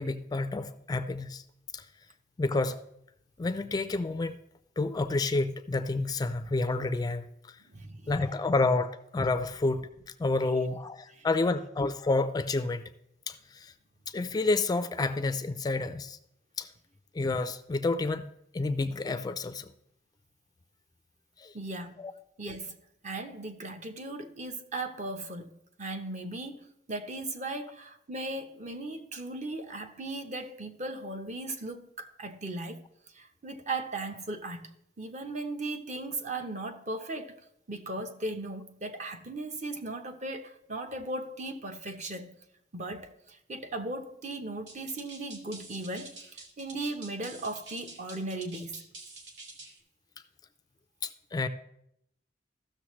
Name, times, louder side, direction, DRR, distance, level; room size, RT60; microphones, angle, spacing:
voice 1, 0.0-1.4 1.7-1.9 2.4-2.8 3.4-4.4 4.8-7.6 8.1-9.9 10.2-12.8 13.3-13.7 14.1-16.2 16.6-16.7 17.1-18.3 18.5-19.7 21.4-21.5 22.0-22.1 51.0-51.5, left 3 dB, 20° left, 0.4 m, -29 dB
voice 2, 7.6-8.2 11.1-11.3 21.5-22.0 22.4-25.5 25.8-34.7 35.0-37.4 37.7-42.4 42.7-48.8, right 2 dB, 40° right, 0.8 m, -37 dB
sound 1, 44.7-49.8, right 3 dB, 80° right, 1.7 m, -47 dB
15.0 x 6.5 x 3.1 m
head